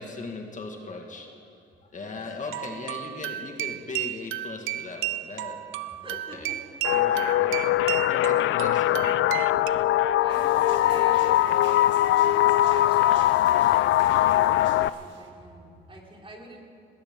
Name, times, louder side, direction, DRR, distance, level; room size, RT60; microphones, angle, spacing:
voice 1, 0.0-1.5 1.8-5.6 6.1-6.5 6.9-7.8 8.1-9.1, left 3 dB, 40° left, 2 dB, 1.9 m, -39 dB
sound 1, 2.5-9.7, right 15 dB, 90° right, 0.5 m, -33 dB
voice 2, 5.8-6.7 7.3-7.4 8.5-9.0 9.8-11.8 12.6-16.6, right 1 dB, 25° right, -1 dB, 3.4 m, -47 dB
sound 2, 6.8-14.9, left 13 dB, 80° left, 0.4 m, -21 dB
sound 3, 10.3-15.3, right 6 dB, 75° right, 1.7 m, -47 dB
19.5 x 19.5 x 3.8 m, 2.6 s
cardioid pair, 90°, 20 cm